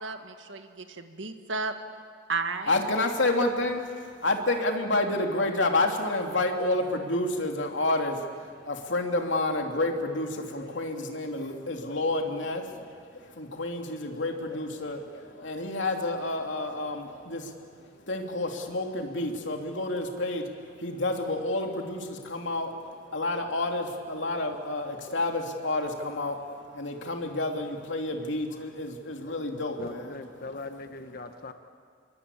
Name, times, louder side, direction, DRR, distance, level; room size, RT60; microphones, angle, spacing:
voice 1, 0.0-1.7 2.3-2.8, right 4 dB, 75° right, 6 dB, 1.9 m, -33 dB
voice 2, 2.7-30.0, left 2 dB, 75° left, 3 dB, 3.0 m, -30 dB
voice 3, 29.8-31.5, left 3 dB, 50° left, 7 dB, 1.3 m, -39 dB
28.5 x 23.5 x 8.6 m, 2.1 s
head